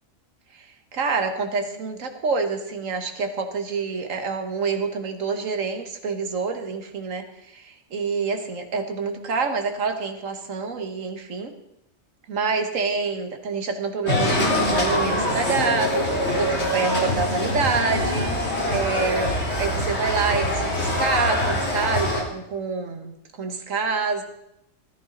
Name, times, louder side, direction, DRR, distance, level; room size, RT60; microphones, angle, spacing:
voice 1, 0.5-11.5 12.3-18.3 18.7-24.2, right 4 dB, 65° right, 6 dB, 1.6 m, -27 dB
sound 1, 14.0-22.2, left 1 dB, 50° left, 2.6 m, -24 dB
14.0 x 13.0 x 3.9 m, 0.81 s
omnidirectional pair, 1.5 m